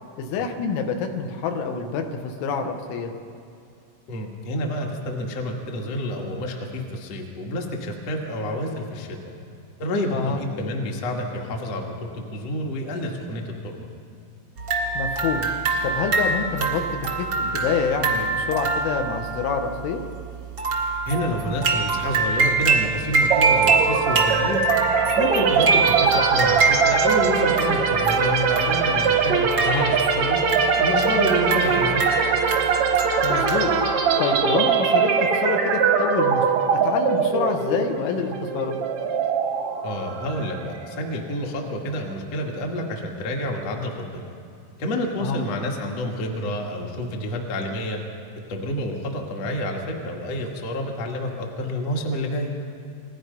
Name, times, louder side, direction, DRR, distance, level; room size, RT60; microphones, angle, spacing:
voice 1, 0.2-3.1 10.1-10.4 15.0-15.5 15.8-16.8 17.2-20.0 29.6-29.9 33.2-33.7 34.2-36.4 36.7-38.8 45.2-45.4, left 5 dB, 80° left, 4 dB, 3.7 m, -27 dB
voice 2, 4.1-9.2 9.8-13.9 21.1-24.6 25.1-30.4 30.8-32.0 39.8-44.2 44.8-48.0 48.5-52.5, left 1 dB, 45° left, 0 dB, 2.3 m, -29 dB
sound 1, 14.6-33.9, right 4 dB, 55° right, 1.3 m, -25 dB
sound 2, 23.3-41.1, right 6 dB, 75° right, 1.6 m, -22 dB
29.0 x 20.5 x 5.4 m, 2.4 s
omnidirectional pair, 5.5 m